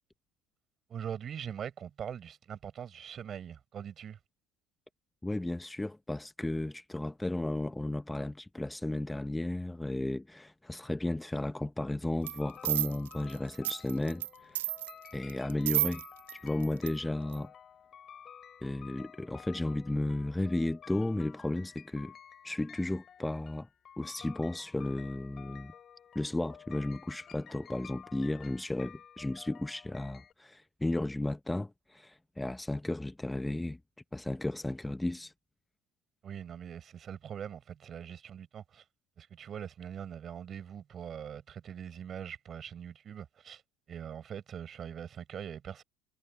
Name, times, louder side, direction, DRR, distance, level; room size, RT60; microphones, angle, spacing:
voice 1, 0.9-4.2 36.2-38.8 39.2-43.6 43.9-45.8, right 8 dB, 40° right, 4.6 m, -42 dB
voice 2, 5.2-14.6 15.1-16.0 16.4-17.5 18.6-22.1 22.4-23.7 24.0-25.7 26.1-33.8 34.1-35.3, left 1 dB, 10° left, 0.9 m, -34 dB
sound 1, 12.2-30.3, left 8 dB, 40° left, 5.2 m, -53 dB
sound 2, 12.3-12.4 12.6-14.3 14.5-16.3 16.6-16.9 17.3-17.4, right 14 dB, 90° right, 0.6 m, -31 dB
supercardioid pair, 85°, 0 cm